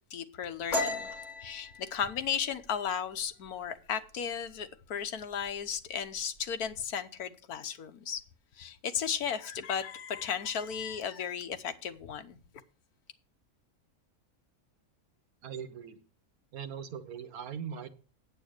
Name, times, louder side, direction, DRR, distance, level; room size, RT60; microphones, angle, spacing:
voice 1, 0.1-1.1 1.4-8.2 8.6-12.4, left 8 dB, 90° left, 1.5 m, -35 dB
sound 1, 0.7-4.1 4.5-4.8 5.2-5.7 6.0-6.7, left 2 dB, 50° left, 2.5 m, -36 dB
voice 2, 15.4-16.0 16.5-17.9, right 7 dB, 80° right, 1.5 m, -40 dB
9.0 x 8.0 x 6.5 m
omnidirectional pair, 1.5 m